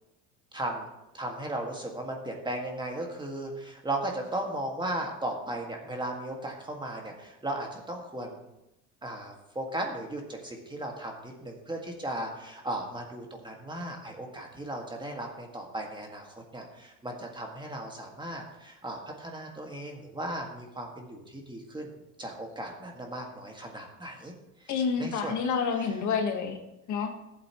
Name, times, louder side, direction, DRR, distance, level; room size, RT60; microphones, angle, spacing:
voice 1, 0.5-0.9 1.1-8.5 9.0-21.9 22.2-24.3 24.6-24.7 25.0-25.3 25.8-25.9, right 1 dB, 15° right, 1 dB, 1.9 m, -36 dB
voice 2, 24.7-26.6 26.9-27.1, left 6 dB, 55° left, 3 dB, 1.6 m, -28 dB
14.0 x 8.1 x 3.1 m, 0.91 s
cardioid pair, 105°, 34 cm